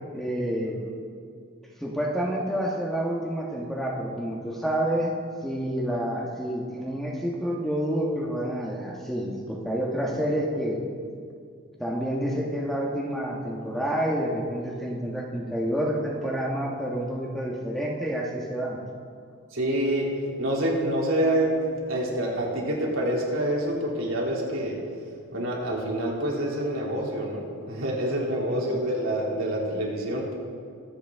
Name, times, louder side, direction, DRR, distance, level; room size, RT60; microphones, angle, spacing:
voice 1, 0.1-0.8 1.8-5.1 5.4-10.8 11.8-18.8 28.7-28.8, equal, ahead, -3 dB, 1.3 m, -28 dB
voice 2, 19.5-20.1 20.4-21.5 21.9-24.8 25.3-30.3, right 1 dB, 80° right, -3 dB, 2.7 m, -27 dB
24.0 x 8.3 x 3.6 m, 2.3 s
head